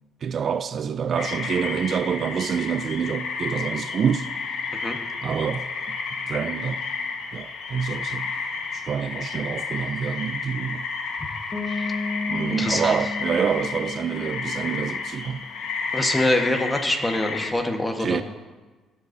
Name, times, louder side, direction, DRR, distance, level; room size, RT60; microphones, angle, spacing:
voice 1, 0.2-4.4 5.2-6.0 6.3-6.8 7.3-8.3 8.7-10.8 12.3-15.4 18.0-18.2, right 7 dB, 50° right, 0.3 m, -27 dB
sound 1, 1.2-17.5, left 4 dB, 75° left, 1.2 m, -31 dB
Bass guitar, 11.5-15.2, left 3 dB, 30° left, 1.5 m, -32 dB
voice 2, 12.5-12.9 15.9-18.2, left 1 dB, 15° left, 1.2 m, -25 dB
16.5 x 7.9 x 2.6 m
cardioid pair, 105°, 0 cm